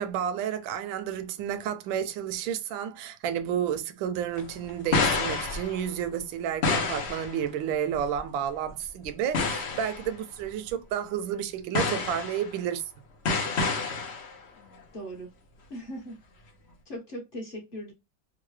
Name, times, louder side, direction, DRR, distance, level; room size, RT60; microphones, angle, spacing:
voice 1, 0.0-12.8, right 9 dB, 80° right, 1.3 m, -31 dB
sound 1, 4.3-6.1 6.6-7.4 7.9-8.2 9.0-9.1 9.3-10.1 10.7-10.8 11.7-12.5 13.3-14.4, left 4 dB, 80° left, 0.5 m, -28 dB
voice 2, 14.9-15.3 15.7-16.2 16.9-17.9, equal, 35° left, 0.9 m, -38 dB
3.6 x 2.1 x 3.1 m
omnidirectional pair, 2.1 m